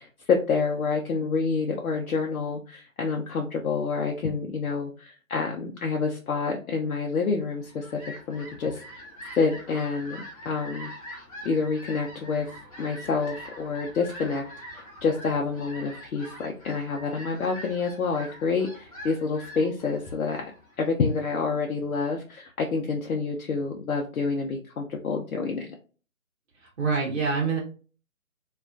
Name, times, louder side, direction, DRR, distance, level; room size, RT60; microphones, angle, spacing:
voice 1, 0.0-8.0 8.3-9.0 9.4-10.9 11.4-12.5 12.8-14.4 14.7-20.5 20.8-25.7, left 4 dB, 75° left, 1 dB, 0.6 m, -28 dB
Fowl, 7.4-21.3, equal, 25° left, 0.6 m, -44 dB
voice 2, 26.6-27.6, right 5 dB, 50° right, -2 dB, 0.8 m, -26 dB
2.3 x 2.2 x 2.4 m, 0.38 s
figure-of-eight pair, 150°, 42 cm